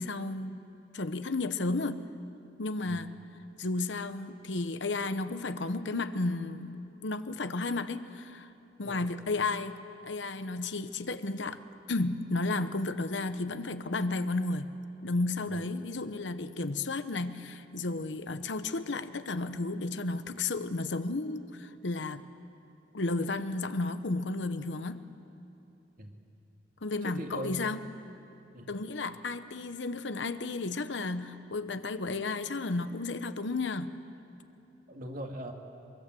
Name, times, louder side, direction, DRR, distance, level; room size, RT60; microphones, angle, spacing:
voice 1, 0.0-2.0 2.6-3.1 3.6-8.5 8.8-11.6 11.9-14.7 15.0-22.2 22.9-25.1 26.8-27.9 28.7-34.0, left 3 dB, 70° left, 11 dB, 1.0 m, -33 dB
voice 2, 27.0-27.8 28.5-28.7 34.9-35.5, right 1 dB, 50° right, 2 dB, 2.3 m, -41 dB
24.0 x 23.5 x 7.7 m, 2.8 s
head